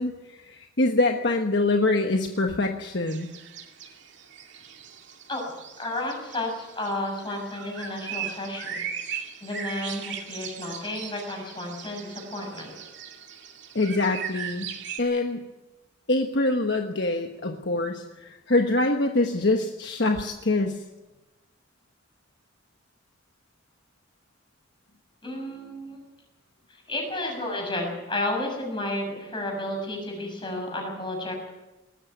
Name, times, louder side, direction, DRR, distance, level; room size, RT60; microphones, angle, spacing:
voice 1, 0.0-3.3 13.7-14.7 15.0-15.4 16.1-20.8, left 2 dB, 55° left, 4 dB, 1.3 m, -25 dB
sound 1, 3.1-15.0, right 8 dB, 60° right, 2.4 m, -39 dB
voice 2, 5.8-12.7 25.2-26.0 26.7-31.5, left 1 dB, 25° left, 1 dB, 6.9 m, -32 dB
20.0 x 14.0 x 9.5 m, 1.1 s
head